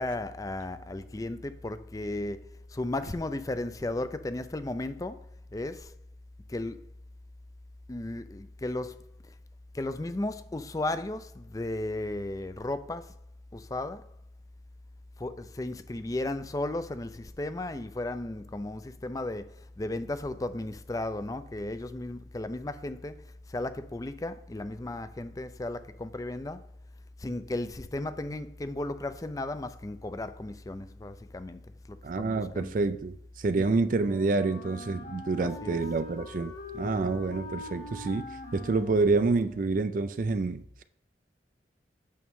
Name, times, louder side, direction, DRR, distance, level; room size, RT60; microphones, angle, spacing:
voice 1, 0.0-6.0 6.5-6.8 7.9-9.3 9.7-13.1 13.5-14.1 15.2-26.7 27.2-32.7 33.6-33.8 35.4-35.8 36.8-37.2, left 2 dB, 20° left, 0.4 m, -35 dB
voice 2, 32.0-38.3 38.5-40.8, right 3 dB, 50° right, 0.4 m, -28 dB
Wind instrument woodwind instrument, 33.9-39.8, left 2 dB, 60° left, 2.0 m, -44 dB
8.5 x 6.3 x 3.6 m
head